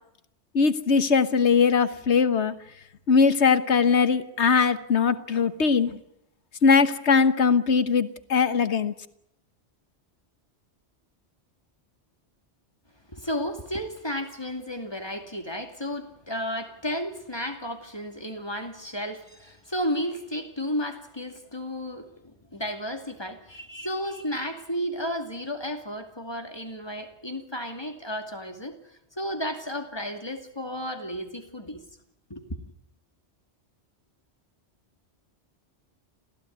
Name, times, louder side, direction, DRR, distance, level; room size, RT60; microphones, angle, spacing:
voice 1, 0.5-2.5 3.1-6.0 6.6-8.9, left 5 dB, 75° left, 1.5 m, -21 dB
voice 2, 13.1-31.8 32.3-32.6, equal, 20° left, 2.6 m, -33 dB
28.0 x 16.0 x 9.4 m
omnidirectional pair, 1.2 m